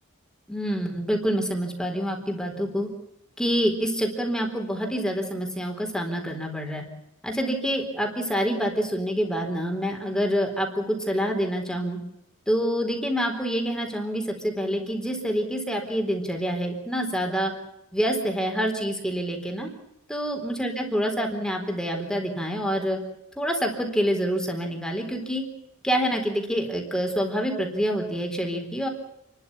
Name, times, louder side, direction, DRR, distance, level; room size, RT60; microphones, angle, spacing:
voice 1, 0.5-2.9 3.4-6.8 7.2-12.0 12.5-17.5 17.9-19.7 20.1-23.0 23.4-25.4 25.8-28.9, equal, 5° left, 2 dB, 4.0 m, -27 dB
29.0 x 13.0 x 9.8 m, 0.83 s
head